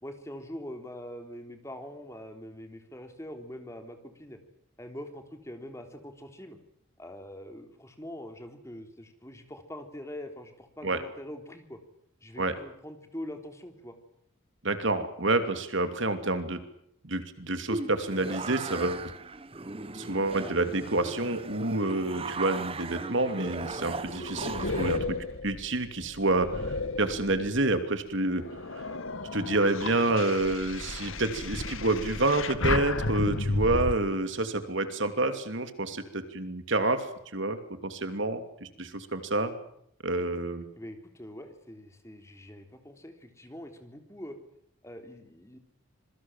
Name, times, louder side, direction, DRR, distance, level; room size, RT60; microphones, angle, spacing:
voice 1, 0.0-4.4 4.8-6.6 7.0-11.8 12.2-14.0 40.8-44.3 44.8-45.6, left 1 dB, 15° left, 6 dB, 3.5 m, -43 dB
voice 2, 14.6-16.6 17.0-19.1 19.9-25.2 25.4-28.4 28.7-28.8 29.3-39.5 40.0-40.6, right 2 dB, 65° right, 9 dB, 2.8 m, -28 dB
sound 1, 17.7-25.0, right 3 dB, 25° right, 1.0 m, -38 dB
sound 2, 23.6-27.8 28.3-33.9, left 2 dB, 80° left, 2.0 m, -33 dB
26.5 x 23.0 x 7.5 m, 0.72 s
head